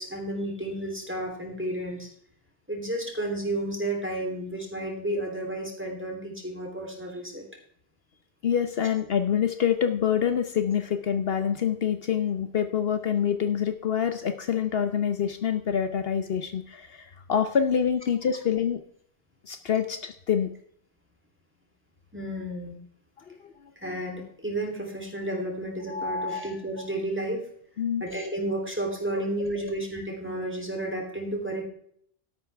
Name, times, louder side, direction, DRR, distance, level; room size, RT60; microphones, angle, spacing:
voice 1, 0.0-2.1 2.7-7.4 22.1-22.8 23.8-27.4 28.0-31.6, right 1 dB, 10° right, 1 dB, 3.2 m, -32 dB
voice 2, 8.4-18.8 19.5-20.5 23.3-23.4 25.9-26.4 26.8-26.9 27.8-28.0 29.5-29.6, left 8 dB, 65° left, 8 dB, 1.1 m, -26 dB
13.0 x 11.0 x 3.4 m, 0.64 s
omnidirectional pair, 1.1 m